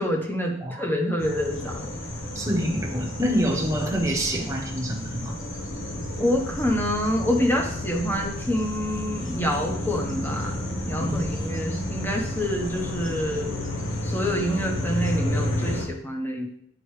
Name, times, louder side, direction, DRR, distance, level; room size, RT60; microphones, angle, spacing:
voice 1, 0.0-1.9 6.2-10.5 10.9-13.5 14.0-16.5, equal, 10° left, 1 dB, 0.9 m, -27 dB
sound 1, 1.2-15.9, left 1 dB, 70° left, 1.1 m, -31 dB
voice 2, 2.3-5.4 11.0-11.2, equal, 15° right, 0 dB, 1.0 m, -26 dB
9.9 x 4.5 x 3.2 m, 0.71 s
head